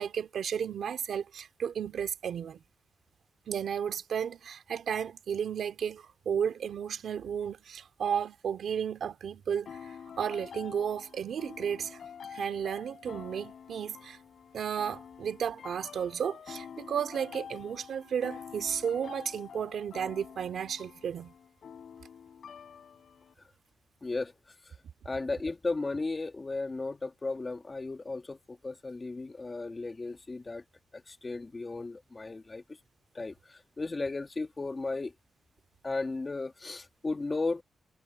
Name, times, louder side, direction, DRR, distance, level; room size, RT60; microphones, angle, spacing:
voice 1, 0.0-2.6 3.5-12.0 12.3-14.2 14.5-21.3, right 8 dB, 70° right, 2.5 m, -33 dB
sound 1, 9.7-23.3, left 7 dB, 60° left, 7.7 m, -47 dB
voice 2, 24.0-24.3 24.7-24.8 25.1-30.6 30.9-32.6 33.1-35.1 35.8-37.6, left 3 dB, 25° left, 1.9 m, -35 dB
wide cardioid pair, 130°, 0 cm